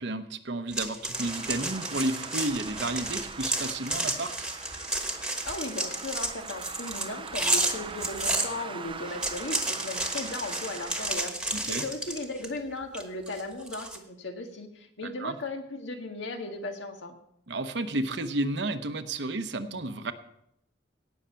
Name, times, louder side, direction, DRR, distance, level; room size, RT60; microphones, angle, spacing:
voice 1, 0.0-4.3 11.5-11.8 15.2-15.4 17.5-20.1, right 2 dB, 70° right, 9 dB, 0.9 m, -32 dB
sound 1, 0.7-8.5 9.0-12.6 12.9-14.0, right 2 dB, 5° right, 1.3 m, -32 dB
Traffic noise roadway noise, 1.1-11.1, right 5 dB, 30° right, 0.5 m, -42 dB
voice 2, 5.4-17.2, left 2 dB, 85° left, 4 dB, 1.8 m, -37 dB
17.5 x 6.5 x 5.7 m, 0.75 s
head